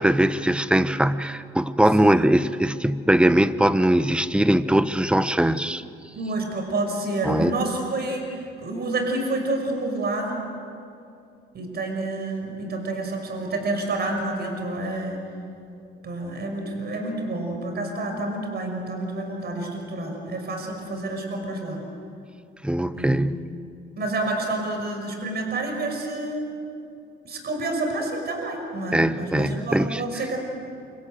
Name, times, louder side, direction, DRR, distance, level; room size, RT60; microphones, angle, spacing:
voice 1, 0.0-5.8 7.2-7.5 22.6-23.4 28.9-30.0, right 1 dB, 5° right, 13 dB, 1.0 m, -21 dB
voice 2, 6.1-8.3 8.6-10.4 11.5-15.2 16.0-21.8 22.9-23.4 24.0-26.6 27.2-30.4, right 2 dB, 55° right, 3 dB, 5.8 m, -29 dB
28.5 x 26.0 x 7.8 m, 2.5 s
cardioid pair, 90°, 20 cm